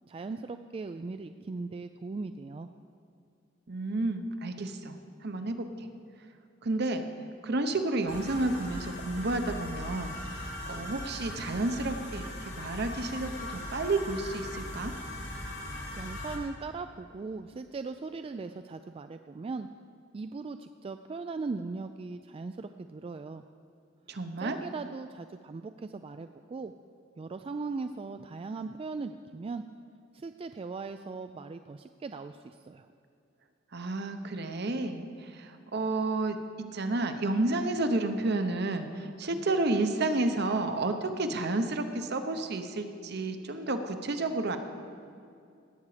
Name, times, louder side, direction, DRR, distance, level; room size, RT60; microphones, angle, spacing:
voice 1, 0.1-2.7 16.0-19.7 20.1-23.4 24.4-26.7 27.2-29.6 30.1-32.9, right 4 dB, 30° right, 8 dB, 0.3 m, -39 dB
voice 2, 3.7-5.0 5.2-5.9 6.6-7.1 7.4-14.9 24.1-24.6 33.7-44.6, right 2 dB, 60° right, 7 dB, 0.9 m, -31 dB
sound 1, 8.1-16.4, left 1 dB, 70° left, 2.5 m, -39 dB
18.0 x 8.2 x 5.0 m, 2.4 s
head